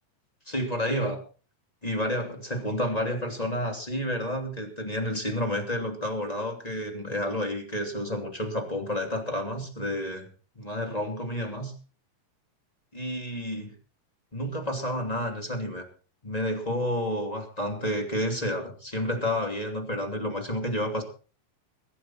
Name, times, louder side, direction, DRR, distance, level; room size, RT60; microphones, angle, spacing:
voice 1, 0.5-1.2 1.8-10.3 10.6-11.7 12.9-13.7 14.3-15.8 16.2-21.0, equal, 10° left, 3 dB, 2.3 m, -30 dB
22.5 x 10.0 x 4.3 m, 0.37 s
omnidirectional pair, 4.0 m